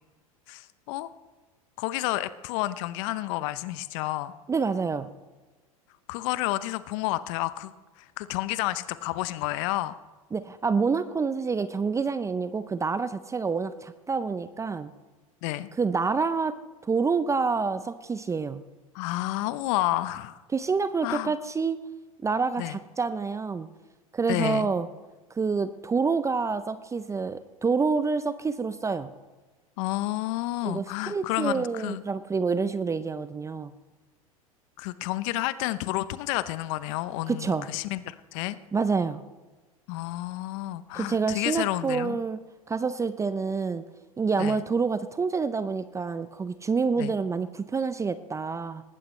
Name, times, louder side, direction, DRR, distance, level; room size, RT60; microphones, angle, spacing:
voice 1, 0.5-1.1 1.8-4.3 6.1-10.0 15.4-15.7 18.9-20.4 21.0-21.3 22.6-22.8 24.3-24.7 29.8-32.0 34.8-38.6 39.9-42.2 44.4-44.6 47.0-47.1, left 16 dB, 60° left, 15 dB, 0.8 m, -30 dB
voice 2, 4.5-5.1 10.3-14.9 15.8-16.5 16.8-18.6 20.5-21.8 22.2-23.7 24.1-24.9 25.4-29.1 30.6-33.7 37.3-37.7 38.7-39.2 40.9-42.4 42.7-43.8 44.2-48.8, right 5 dB, 15° right, 13 dB, 0.6 m, -27 dB
19.5 x 15.0 x 3.3 m, 1.2 s
hypercardioid pair, 90°, 18 cm